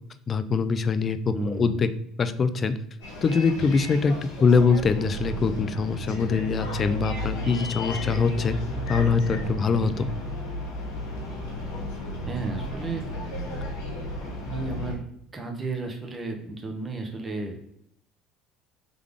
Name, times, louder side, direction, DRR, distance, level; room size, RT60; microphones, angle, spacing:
voice 1, 0.3-1.9 2.2-2.7 3.2-4.1 4.4-8.6 8.9-10.1, left 5 dB, 35° left, 11 dB, 0.4 m, -23 dB
voice 2, 1.3-1.8 12.3-13.2 14.4-15.0 15.3-17.6, right 3 dB, 25° right, 2 dB, 0.9 m, -33 dB
Bus, 3.0-14.9, left 1 dB, 85° left, 1.6 m, -33 dB
3.7 x 3.4 x 3.5 m, 0.71 s
supercardioid pair, 90°, 0 cm